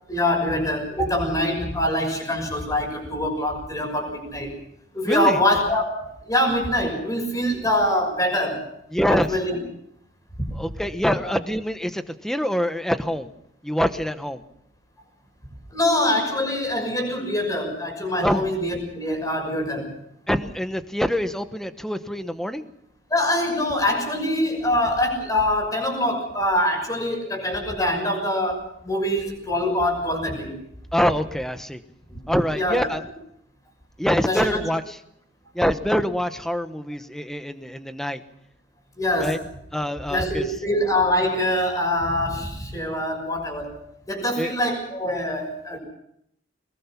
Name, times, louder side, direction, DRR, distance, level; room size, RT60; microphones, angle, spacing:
voice 1, 0.1-4.6 4.9-8.7 9.1-9.6 10.4-10.6 11.2-11.3 15.7-19.9 23.1-30.5 32.1-32.2 32.5-33.0 34.2-34.6 39.0-39.4 40.1-43.8 44.1-45.8, left 1 dB, 20° left, 2 dB, 6.2 m, -24 dB
voice 2, 5.0-5.4 8.9-9.3 10.5-13.3 13.6-14.4 18.2-18.4 20.3-22.7 30.9-31.8 32.3-33.0 34.0-34.9 35.5-38.2 39.2-39.4 39.7-40.5 44.4-44.5, equal, ahead, 9 dB, 1.1 m, -25 dB
23.0 x 21.0 x 5.9 m, 0.74 s
head